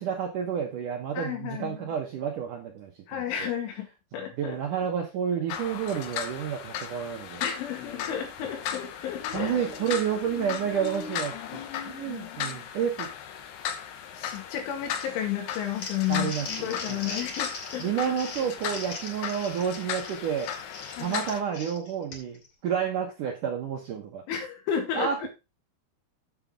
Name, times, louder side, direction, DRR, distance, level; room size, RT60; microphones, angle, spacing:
voice 1, 0.0-3.5 4.1-7.4 9.3-13.1 16.1-17.2 17.8-20.5 21.0-24.2 24.9-25.3, right 8 dB, 70° right, 1 dB, 2.0 m, -30 dB
voice 2, 1.2-1.9 3.1-4.6 7.4-9.5 14.1-16.3 16.6-17.9 21.0-21.2 24.3-25.3, left 9 dB, 85° left, 4 dB, 4.5 m, -32 dB
sound 1, 5.5-21.4, left 9 dB, 70° left, 2.7 m, -36 dB
Crumpling crinkling, 15.5-22.5, left 3 dB, 40° left, 3.4 m, -40 dB
8.9 x 7.2 x 3.7 m, 0.26 s
omnidirectional pair, 5.4 m